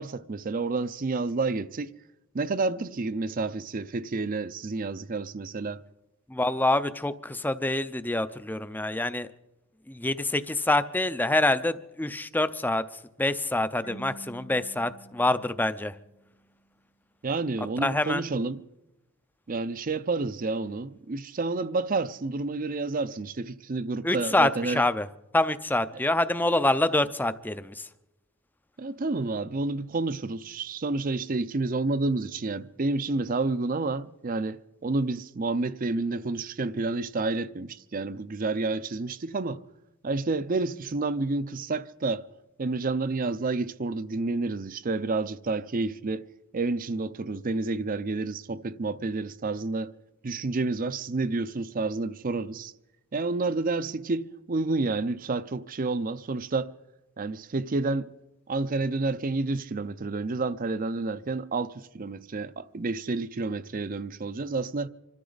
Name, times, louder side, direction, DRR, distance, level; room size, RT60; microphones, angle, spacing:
voice 1, 0.0-1.9 2.3-5.8 17.2-18.6 19.5-24.8 28.8-39.6 40.0-42.3 42.6-46.3 46.5-49.9 50.2-52.7 53.1-56.7 57.2-58.1 58.5-64.9, right 3 dB, 40° right, 0.5 m, -29 dB
voice 2, 6.3-9.3 9.9-12.8 13.2-15.9 17.8-18.2 24.0-25.1 25.3-27.9, left 2 dB, 10° left, 0.5 m, -26 dB
Marimba xylophone / Wood, 13.8-16.6, right 2 dB, 30° left, 1.0 m, -48 dB
26.5 x 13.5 x 4.0 m
head